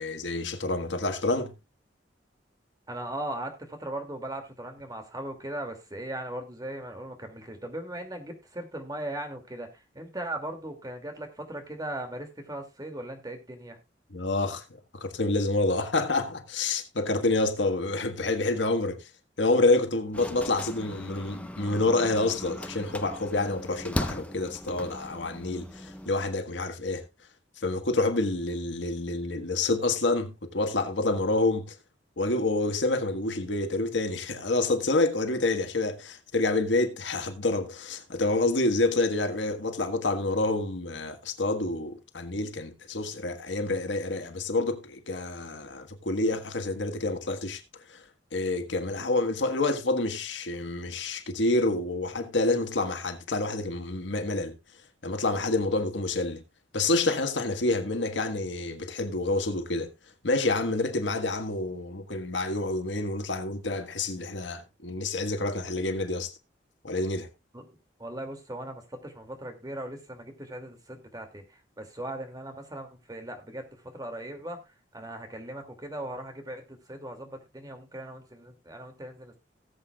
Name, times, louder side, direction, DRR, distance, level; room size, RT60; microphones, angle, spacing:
voice 1, 0.0-1.5 14.1-19.1 19.4-27.0 27.6-31.7 32.2-47.6 47.9-48.0 48.3-54.6 55.0-56.4 56.7-59.9 60.2-66.3 66.8-67.3, left 2 dB, 80° left, 1.6 m, -28 dB
voice 2, 2.9-13.8 67.5-74.6 74.9-79.4, right 1 dB, 20° right, 2.5 m, -38 dB
sound 1, 20.1-26.1, left 1 dB, 10° left, 0.9 m, -38 dB
18.5 x 8.0 x 2.4 m
head